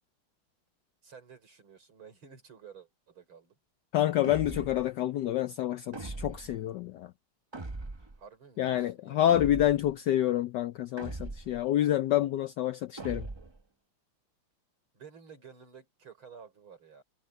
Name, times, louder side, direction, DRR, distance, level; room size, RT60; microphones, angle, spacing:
voice 1, 1.0-3.6 8.2-9.2 14.9-17.0, right 6 dB, 70° right, 5.8 m, -52 dB
voice 2, 3.9-7.1 8.6-13.3, left 12 dB, 75° left, 1.0 m, -28 dB
sound 1, 4.2-4.9 5.9-6.6 7.5-8.2 9.3-9.9 11.0-11.7 13.0-13.6, right 2 dB, 35° right, 0.4 m, -40 dB
omnidirectional pair, 2.3 m